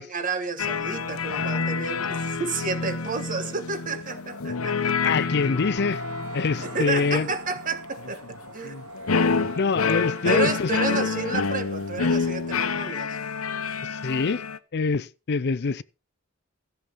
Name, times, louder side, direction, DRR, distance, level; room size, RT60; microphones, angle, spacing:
voice 1, 0.1-5.1 6.6-8.2 8.5-8.7 10.2-13.2, right 4 dB, 40° right, 1.4 m, -30 dB
sound 1, 0.6-14.6, left 5 dB, 85° left, 0.9 m, -28 dB
sound 2, 4.9-12.1, right 1 dB, 75° right, 1.3 m, -41 dB
voice 2, 5.0-6.0 6.3-7.3 9.5-11.1 13.8-14.4 14.7-15.8, left 4 dB, 50° left, 0.5 m, -25 dB
14.0 x 7.1 x 5.4 m
head